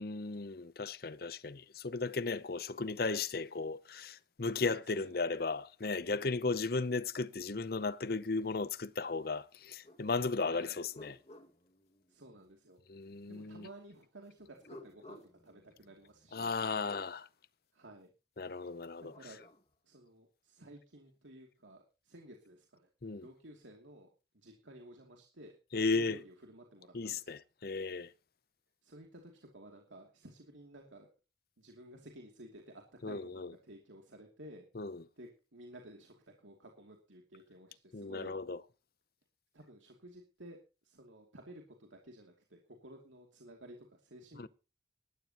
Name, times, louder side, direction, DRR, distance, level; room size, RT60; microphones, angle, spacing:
voice 1, 0.0-11.2 12.9-13.7 16.3-17.3 18.4-19.1 23.0-23.2 25.7-26.2 26.9-28.1 33.0-33.5 34.7-35.0 37.9-38.6 44.4-44.5, left 3 dB, 50° left, 0.7 m, -35 dB
voice 2, 4.6-5.1 10.5-10.8 12.1-12.8 13.3-16.5 17.7-18.1 19.0-19.4 19.8-22.9 23.2-24.1 24.3-27.4 28.8-31.1 31.6-34.7 35.2-38.4 39.5-44.5, right 1 dB, 85° right, 2.7 m, -54 dB
sound 1, 9.8-10.0 10.5-12.5 14.4-17.1 18.8-19.6, left 1 dB, 35° left, 1.9 m, -56 dB
19.0 x 14.0 x 3.0 m
head